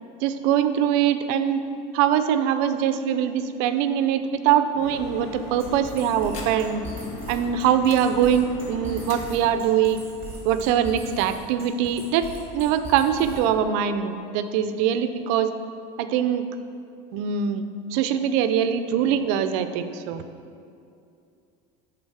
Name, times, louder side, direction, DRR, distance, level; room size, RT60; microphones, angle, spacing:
voice 1, 0.2-1.6 1.9-6.8 7.3-10.0 10.4-12.3 12.5-15.5 16.0-16.4 17.1-17.6 17.9-20.2, right 9 dB, 65° right, 10 dB, 0.5 m, -23 dB
sound 1, 4.8-10.3, left 2 dB, 45° left, 1.1 m, -38 dB
sound 2, 5.6-13.6, right 3 dB, 15° right, 2.0 m, -40 dB
10.5 x 3.9 x 4.8 m, 2.5 s
supercardioid pair, 145°, 17 cm